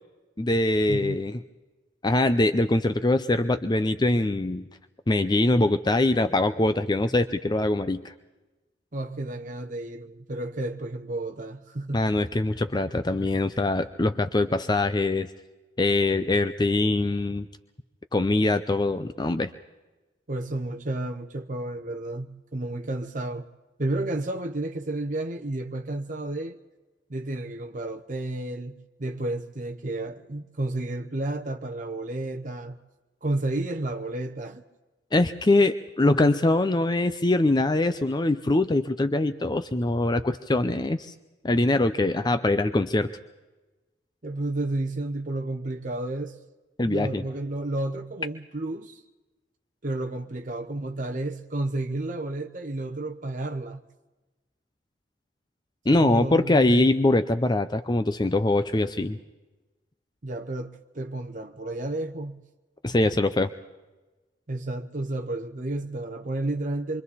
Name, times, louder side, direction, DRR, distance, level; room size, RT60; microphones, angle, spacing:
voice 1, 0.4-1.4 2.0-4.7 5.1-8.1 11.9-15.3 15.8-17.5 18.1-19.5 35.1-41.1 41.4-43.1 46.8-47.2 55.9-59.2 62.8-63.5, left 2 dB, 25° left, 0.5 m, -23 dB
voice 2, 8.9-12.1 20.3-23.5 23.8-26.6 27.1-32.8 33.2-34.6 44.2-46.4 46.8-49.0 49.8-53.8 55.9-56.9 60.2-62.4 64.5-67.0, right 2 dB, 45° right, 0.9 m, -31 dB
26.5 x 24.0 x 4.2 m
head